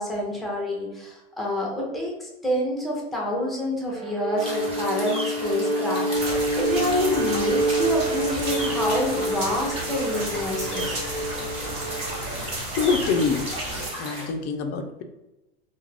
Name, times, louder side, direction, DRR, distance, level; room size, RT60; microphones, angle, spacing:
voice 1, 0.0-11.0, left 1 dB, ahead, -3 dB, 0.7 m, -28 dB
Bowed string instrument, 3.9-12.3, right 1 dB, 75° right, 0.7 m, -28 dB
sound 1, 4.4-14.3, equal, 20° right, 1.0 m, -35 dB
sound 2, 6.1-13.9, right 1 dB, 45° right, 1.1 m, -33 dB
voice 2, 12.7-13.4 14.0-15.0, left 5 dB, 30° left, 6 dB, 0.4 m, -25 dB
2.3 x 2.2 x 3.2 m, 0.97 s
hypercardioid pair, 120°, 31 cm